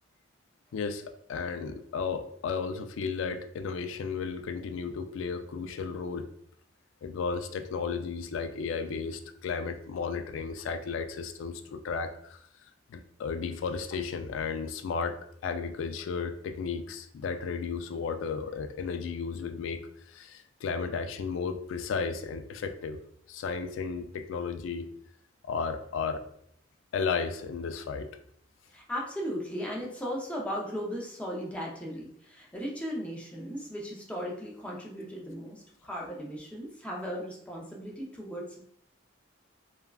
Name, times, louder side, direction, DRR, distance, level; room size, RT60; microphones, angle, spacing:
voice 1, 0.7-6.3 7.0-12.4 12.9-23.0 23.3-24.9 25.5-26.2 26.9-28.1, left 5 dB, 80° left, 8 dB, 0.3 m, -34 dB
voice 2, 28.7-38.6, equal, 5° left, -3 dB, 0.5 m, -37 dB
3.4 x 2.2 x 2.3 m, 0.69 s
head